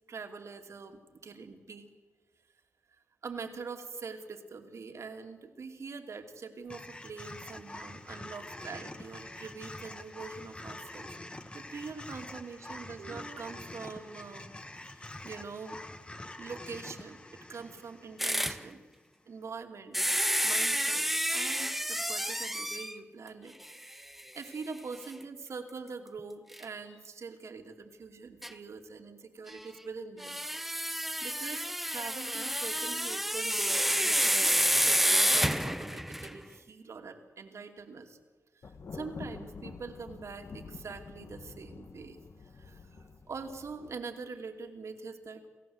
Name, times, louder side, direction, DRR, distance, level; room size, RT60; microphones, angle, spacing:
voice 1, 0.1-1.9 3.2-11.1 11.5-14.5 14.9-15.8 16.4-17.2 17.5-18.8 19.3-20.0 20.4-23.5 24.3-30.4 31.2-38.2 38.6-42.2 42.5-45.5, right 4 dB, 60° right, 5 dB, 2.7 m, -44 dB
sound 1, 6.7-19.0, left 2 dB, 20° left, 1.4 m, -46 dB
sound 2, 18.2-18.6 19.9-23.0 23.6-23.7 24.2-24.3 26.5-26.6 28.4-28.5 30.2-36.4, equal, 5° right, 0.9 m, -29 dB
Thunder, 38.6-44.0, left 4 dB, 55° left, 1.6 m, -47 dB
28.5 x 15.5 x 8.0 m, 1.4 s
cardioid pair, 90°, 5 cm